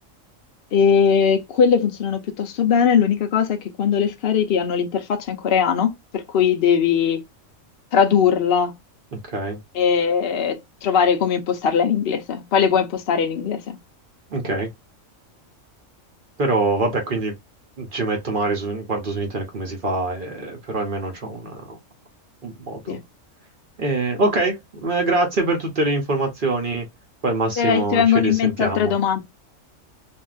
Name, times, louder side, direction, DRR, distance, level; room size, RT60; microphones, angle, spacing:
voice 1, 0.7-7.2 7.9-8.7 9.7-13.8 22.9-23.0 27.6-29.2, left 7 dB, 55° left, 0.8 m, -20 dB
voice 2, 9.1-9.6 14.3-14.7 16.4-17.3 17.8-21.8 22.4-23.0 23.8-26.9 27.2-28.9, right 2 dB, 45° right, 0.8 m, -24 dB
3.5 x 2.4 x 2.3 m
omnidirectional pair, 1.4 m